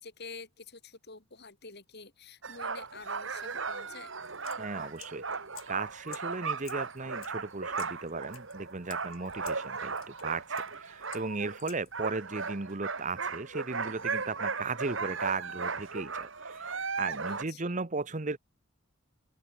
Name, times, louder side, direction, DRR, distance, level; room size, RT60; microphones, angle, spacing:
voice 1, 0.0-4.1 17.3-17.7, left 4 dB, 50° left, 3.4 m, -48 dB
sound 1, 2.4-11.6 11.9-17.4, right 4 dB, 60° right, 2.4 m, -36 dB
sound 2, 4.2-12.1, left 12 dB, 75° left, 4.4 m, -54 dB
voice 2, 4.6-5.2 5.7-18.4, right 3 dB, 35° right, 1.0 m, -36 dB
open air
head